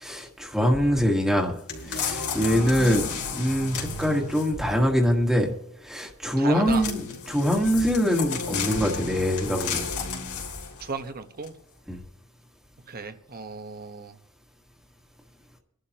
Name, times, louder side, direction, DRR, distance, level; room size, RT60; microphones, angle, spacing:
voice 1, 0.0-1.5 1.8-5.5 5.8-9.8 11.9-12.0, equal, ahead, 0 dB, 1.6 m, -24 dB
sound 1, 1.7-4.7 6.7-10.9 11.4-11.5, left 5 dB, 70° left, 3.1 m, -32 dB
voice 2, 6.4-6.8 10.8-11.6 12.9-14.2, right 4 dB, 45° right, 8 dB, 1.1 m, -35 dB
26.0 x 11.5 x 3.0 m, 0.74 s
head